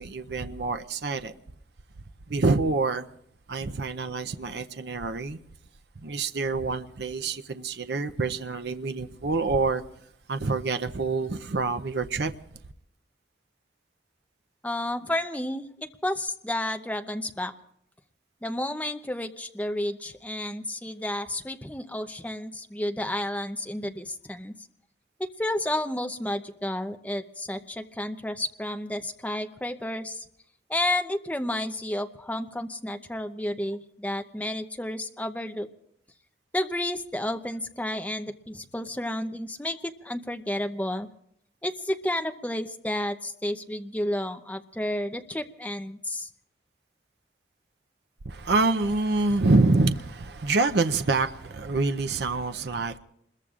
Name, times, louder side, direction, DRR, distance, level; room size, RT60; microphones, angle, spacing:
voice 1, 0.0-1.3 2.3-3.1 3.5-5.4 6.0-9.8 10.3-12.3 48.3-53.0, right 3 dB, 65° right, 0.6 m, -26 dB
voice 2, 14.6-17.5 18.4-24.5 25.4-30.3 30.7-35.7 36.5-41.1 41.6-46.3, left 1 dB, 10° left, 0.7 m, -31 dB
27.0 x 21.5 x 2.5 m
head